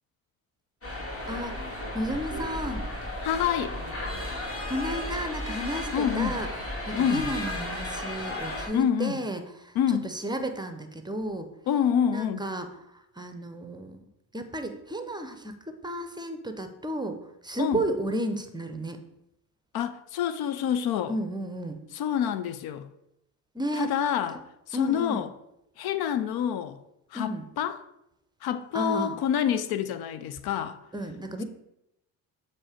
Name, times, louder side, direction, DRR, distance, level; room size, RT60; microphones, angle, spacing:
sound 1, 0.8-8.7, left 1 dB, 35° left, 2.4 m, -34 dB
voice 1, 1.3-1.6 1.9-2.8 4.7-6.5 6.9-11.5 12.1-12.7 12.9-14.0 14.3-17.2 17.4-19.0 21.1-21.8 23.5-23.9 24.3-24.4 24.7-25.2 27.1-27.4 28.7-29.2 30.9-31.4, right 1 dB, 10° right, 0.6 m, -32 dB
voice 2, 3.2-3.7 5.9-6.4 6.9-7.2 8.7-9.2 9.8-10.1 11.7-12.4 17.6-17.8 19.7-21.1 21.9-22.9 23.8-24.4 24.7-25.3 25.8-26.8 27.1-27.8 28.4-30.8, left 9 dB, 65° left, 0.5 m, -27 dB
7.1 x 2.8 x 4.9 m
supercardioid pair, 70°, 40 cm